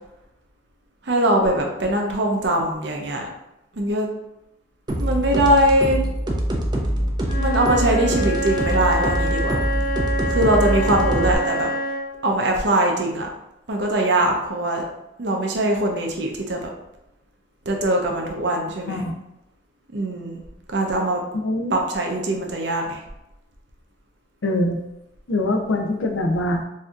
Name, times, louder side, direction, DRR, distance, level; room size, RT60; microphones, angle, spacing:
voice 1, 1.1-3.3 3.8-4.1 5.0-6.0 7.4-9.6 10.3-11.7 12.2-13.3 13.7-14.8 15.2-16.7 17.7-19.0 19.9-20.4 20.7-21.2 21.7-23.0, right 1 dB, 65° right, 1 dB, 0.6 m, -21 dB
sound 1, 4.9-11.3, equal, 25° right, 0.4 m, -24 dB
Wind instrument woodwind instrument, 7.2-12.2, right 1 dB, 45° left, 1.0 m, -26 dB
voice 2, 21.4-21.8 24.4-24.8 25.3-26.6, left 1 dB, 85° left, 3 dB, 0.5 m, -23 dB
4.2 x 2.7 x 2.4 m, 0.90 s
head